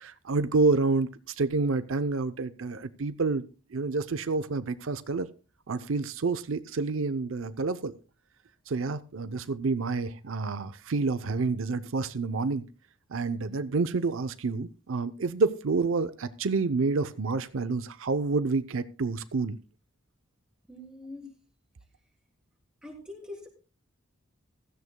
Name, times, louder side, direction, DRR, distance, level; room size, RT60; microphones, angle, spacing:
voice 1, 0.0-3.4 3.7-5.3 5.7-7.9 8.7-12.6 13.1-19.6, right 3 dB, 80° right, 13 dB, 0.6 m, -28 dB
voice 2, 20.7-21.3 22.8-23.5, left 2 dB, 5° right, -1 dB, 3.5 m, -43 dB
16.0 x 14.0 x 2.2 m, 0.34 s
head